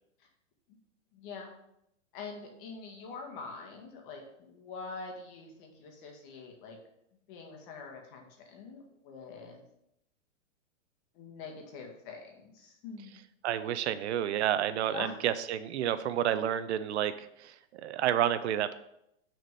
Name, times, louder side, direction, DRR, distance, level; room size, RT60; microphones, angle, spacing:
voice 1, 1.1-1.5 2.1-6.8 7.3-9.6 11.1-13.2 14.9-15.2, left 4 dB, 40° left, 2 dB, 1.7 m, -45 dB
voice 2, 13.4-18.7, right 10 dB, 60° right, 13 dB, 0.5 m, -30 dB
6.5 x 4.3 x 5.2 m, 0.79 s
hypercardioid pair, 145°, 37 cm